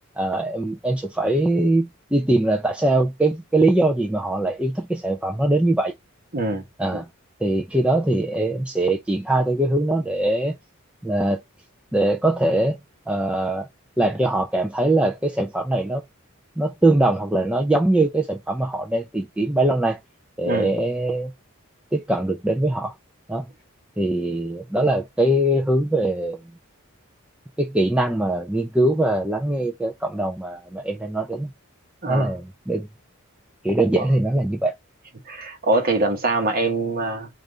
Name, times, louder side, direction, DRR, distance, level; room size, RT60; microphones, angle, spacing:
voice 1, 0.2-5.9 6.8-7.1 7.4-10.6 11.0-11.4 11.9-12.8 13.1-13.7 14.0-16.0 16.6-20.0 20.4-21.3 21.9-22.9 23.3-23.5 24.0-26.4 27.6-31.5 32.1-32.9 33.6-34.7, right 1 dB, 5° right, 0.4 m, -22 dB
voice 2, 6.3-6.6 6.9-7.0 20.4-20.7 32.0-32.3 34.0-34.1 35.3-37.3, right 2 dB, 40° right, 1.0 m, -23 dB
3.3 x 2.5 x 3.7 m
head